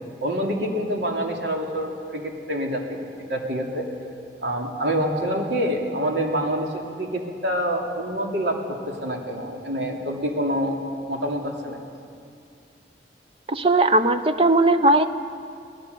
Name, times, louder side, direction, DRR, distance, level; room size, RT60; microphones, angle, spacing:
voice 1, 0.2-3.0 3.3-3.8 4.4-10.8 11.1-11.8, equal, 85° right, 1 dB, 3.1 m, -26 dB
voice 2, 13.5-15.1, right 2 dB, 30° right, 10 dB, 0.8 m, -18 dB
25.0 x 18.0 x 6.9 m, 2.4 s
head